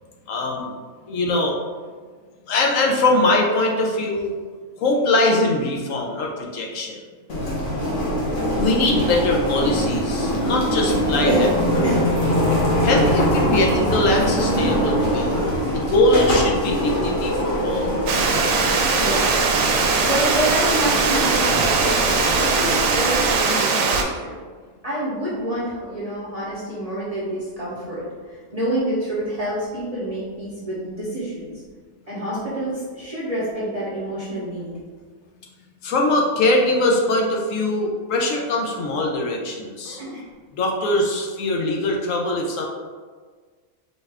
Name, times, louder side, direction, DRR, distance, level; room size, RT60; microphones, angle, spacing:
voice 1, 0.3-0.7 1.1-1.5 2.5-4.3 4.8-7.0 8.5-11.3 11.7-11.9 12.8-18.0 35.8-40.0 40.5-42.7, left 2 dB, 70° left, -1 dB, 0.9 m, -22 dB
sound 1, 7.3-23.3, equal, 45° left, 0.9 m, -23 dB
Water, 18.1-24.0, right 4 dB, 75° right, 0.9 m, -20 dB
voice 2, 18.9-19.3 20.0-24.3 24.8-28.1 28.5-31.5 32.1-34.7 39.8-40.3, right 1 dB, 35° right, -8 dB, 0.7 m, -27 dB
4.2 x 2.4 x 3.3 m, 1.5 s
omnidirectional pair, 1.5 m